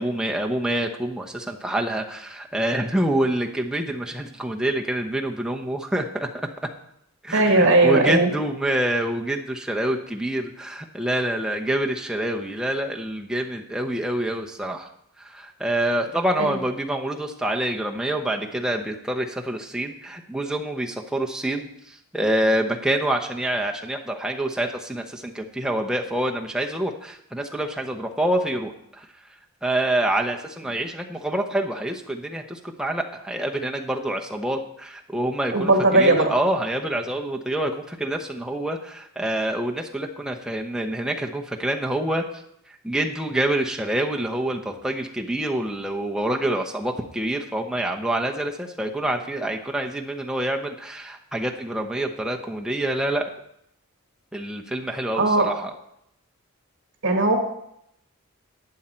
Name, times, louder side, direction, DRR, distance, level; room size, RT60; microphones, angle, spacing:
voice 1, 0.0-6.3 7.2-14.9 15.2-29.1 29.6-42.2 42.8-53.3 54.3-55.7, right 1 dB, 5° right, 1 dB, 0.8 m, -26 dB
voice 2, 7.3-8.3 16.4-16.5 35.5-36.3 55.1-55.5 57.0-57.4, right 2 dB, 55° right, 3 dB, 1.9 m, -18 dB
11.5 x 8.5 x 4.4 m, 0.76 s
head